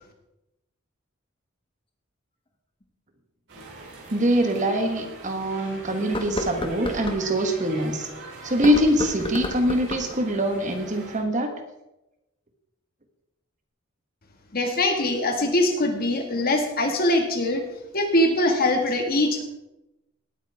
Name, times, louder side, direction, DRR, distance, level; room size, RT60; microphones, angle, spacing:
sound 1, 2.8-2.9 4.1-4.2 4.7-4.8 6.0-7.2 8.5-10.2, left 1 dB, 25° left, 1.2 m, -31 dB
sound 2, 3.5-11.2, right 2 dB, 60° right, 4.7 m, -43 dB
voice 1, 4.1-8.1 8.4-11.5, equal, 35° right, 5 dB, 1.5 m, -23 dB
voice 2, 14.5-17.6 17.9-19.4, left 1 dB, 45° left, 3 dB, 1.9 m, -22 dB
18.5 x 9.2 x 3.6 m, 0.94 s
head